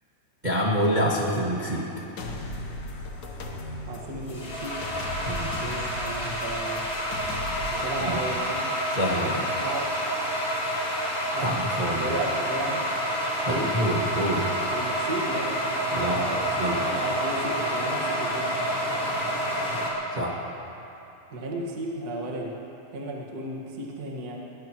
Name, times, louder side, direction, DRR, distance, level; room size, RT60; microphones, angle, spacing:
voice 1, 0.4-1.9 5.3-5.5 8.0-8.1 8.9-9.4 11.4-12.2 13.5-14.5 15.9-16.2 16.5-16.8 20.2-20.4, equal, 90° right, -4 dB, 0.4 m, -26 dB
sound 1, 2.2-7.8, left 2 dB, 80° left, 0.9 m, -37 dB
sound 2, 3.8-19.9, equal, 25° left, 2.7 m, -29 dB
voice 2, 3.9-4.8 5.6-7.0 7.7-8.7 9.1-9.9 11.3-11.6 12.0-12.9 13.5-13.8 14.7-15.6 15.9-18.5 21.3-22.6 22.9-24.4, right 1 dB, 40° right, -2 dB, 1.6 m, -34 dB
20.5 x 20.0 x 3.0 m, 2.9 s
omnidirectional pair, 3.7 m